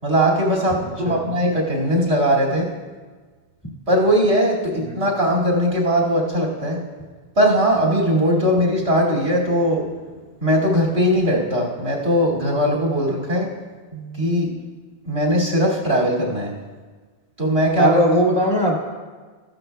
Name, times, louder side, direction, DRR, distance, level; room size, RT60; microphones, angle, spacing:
voice 1, 0.0-2.7 3.9-6.8 7.4-9.9 10.4-13.5 13.9-14.5 15.0-16.5 17.4-18.2, equal, 85° right, -5 dB, 2.6 m, -19 dB
voice 2, 17.8-18.8, equal, 25° left, -3 dB, 1.8 m, -19 dB
15.0 x 12.0 x 2.3 m, 1.4 s
omnidirectional pair, 1.1 m